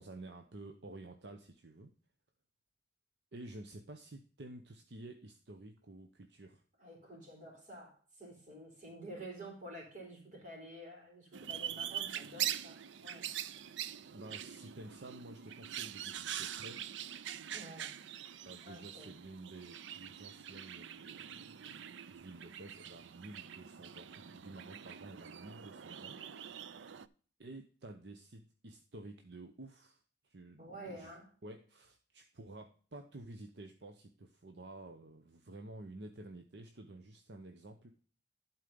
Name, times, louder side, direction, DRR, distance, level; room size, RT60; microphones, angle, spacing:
voice 1, 0.0-1.9 3.3-6.6 13.8-17.0 18.4-21.7 22.1-26.6 27.4-31.2 31.4-37.9, right 2 dB, 65° right, 0.8 m, -51 dB
voice 2, 6.8-13.3 17.5-18.0 18.6-19.1 30.6-31.3, right 1 dB, 40° right, 3.7 m, -50 dB
sound 1, 11.3-27.1, right 10 dB, 85° right, 0.5 m, -44 dB
11.5 x 4.5 x 5.2 m
head